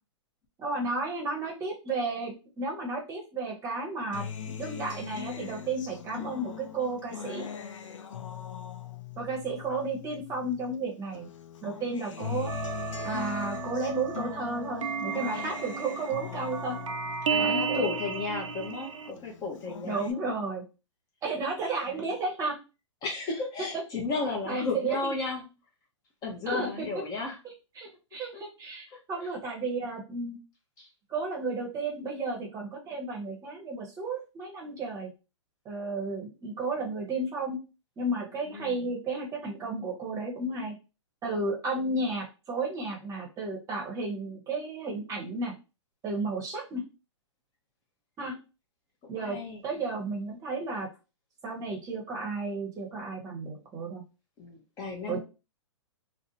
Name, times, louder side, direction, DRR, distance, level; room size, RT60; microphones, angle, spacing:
voice 1, 0.6-4.2 4.6-7.5 9.2-11.3 11.6-12.5 13.0-16.8 17.3-17.8 19.8-20.6 21.2-22.6 23.6-23.7 24.5-25.1 26.5-26.9 27.7-30.4 31.1-35.1 35.6-37.6 38.0-40.8 41.2-45.5 46.0-46.8 48.2-48.4 49.1-49.4 49.6-50.9 51.4-54.0 55.1-55.2, right 3 dB, 20° right, -1 dB, 0.8 m, -33 dB
Acoustic guitar, 4.1-10.8 11.1-18.8 19.2-20.1, left 8 dB, 85° left, 0.4 m, -40 dB
sound 1, 12.5-19.1, right 6 dB, 90° right, 0.4 m, -33 dB
voice 2, 17.2-20.4 21.9-22.1 23.0-25.5 26.2-27.4 28.3-28.4 28.9-29.3 30.8-30.9 38.5-38.8 49.1-49.6 54.4-55.2, left 3 dB, 25° left, 0 dB, 0.6 m, -34 dB
2.5 x 2.1 x 2.7 m, 0.30 s
hypercardioid pair, 130°, 16 cm